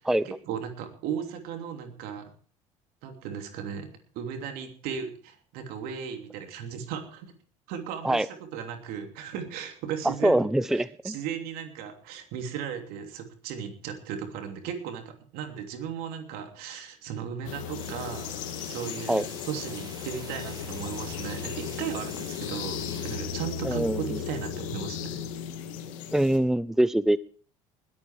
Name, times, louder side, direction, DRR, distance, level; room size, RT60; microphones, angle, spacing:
voice 1, 0.2-2.3 3.0-3.9 4.1-7.3 7.7-25.2, right 8 dB, 65° right, 5 dB, 3.0 m, -36 dB
voice 2, 10.0-11.2 19.1-19.2 23.6-24.0 26.1-27.2, right 1 dB, 5° right, 18 dB, 0.5 m, -23 dB
sound 1, 17.4-26.4, left 8 dB, 75° left, 2.0 m, -36 dB
sound 2, 17.8-23.2, right 3 dB, 25° right, 5.9 m, -47 dB
20.5 x 8.9 x 4.8 m, 0.42 s
hypercardioid pair, 65°, 17 cm